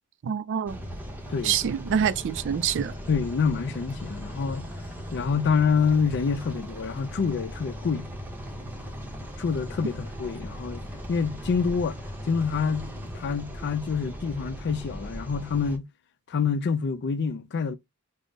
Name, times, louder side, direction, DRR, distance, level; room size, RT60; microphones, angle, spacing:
voice 1, 0.2-0.8 1.4-3.0, right 8 dB, 55° right, 0.3 m, -26 dB
sound 1, 0.7-15.8, equal, 10° right, 0.7 m, -38 dB
voice 2, 3.1-4.7 5.1-8.1 9.4-12.0 12.3-15.9 16.3-17.7, left 5 dB, 50° left, 0.4 m, -27 dB
3.6 x 2.0 x 3.7 m
head